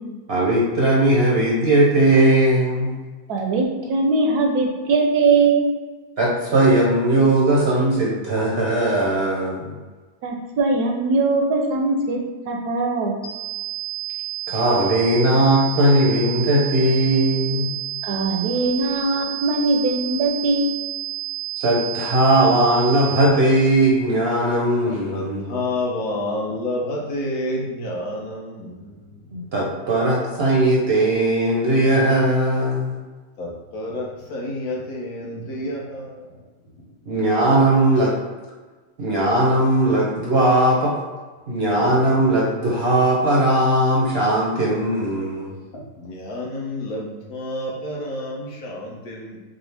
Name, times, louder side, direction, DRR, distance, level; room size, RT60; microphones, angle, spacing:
voice 1, 0.3-2.9 6.2-9.7 14.5-17.7 21.6-25.6 29.3-33.0 37.1-38.1 39.0-40.9 41.5-45.5, right 1 dB, 55° right, -4 dB, 0.7 m, -18 dB
voice 2, 3.3-5.7 10.2-12.2 12.5-13.3 18.0-20.7, right 3 dB, 80° right, 1 dB, 1.2 m, -21 dB
sound 1, 13.2-23.2, right 16 dB, 50° left, 0.6 m, -30 dB
voice 3, 25.1-28.8 33.4-36.2 46.0-49.4, left 1 dB, 70° left, -3 dB, 1.4 m, -29 dB
6.0 x 2.0 x 3.3 m, 1.3 s
omnidirectional pair, 1.7 m